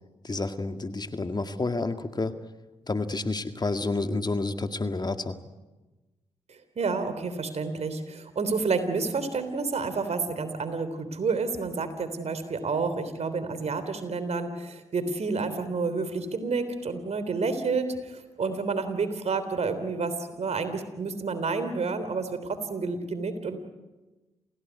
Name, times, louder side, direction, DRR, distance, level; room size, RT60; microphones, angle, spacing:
voice 1, 0.2-2.4 2.9-5.4, left 3 dB, 35° left, 8 dB, 2.0 m, -29 dB
voice 2, 6.5-23.6, right 4 dB, 60° right, 10 dB, 3.5 m, -30 dB
28.0 x 16.5 x 9.5 m, 1.1 s
supercardioid pair, 40°, 12 cm